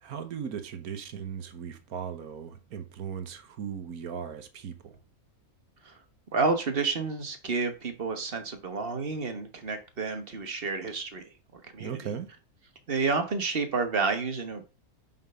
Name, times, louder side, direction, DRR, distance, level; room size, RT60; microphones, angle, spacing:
voice 1, 0.0-5.0 11.8-12.3, right 7 dB, 85° right, 1.6 m, -38 dB
voice 2, 6.3-11.2 11.5-12.0 12.9-14.6, right 4 dB, 40° right, 1.5 m, -30 dB
5.9 x 5.8 x 5.6 m
omnidirectional pair, 1.5 m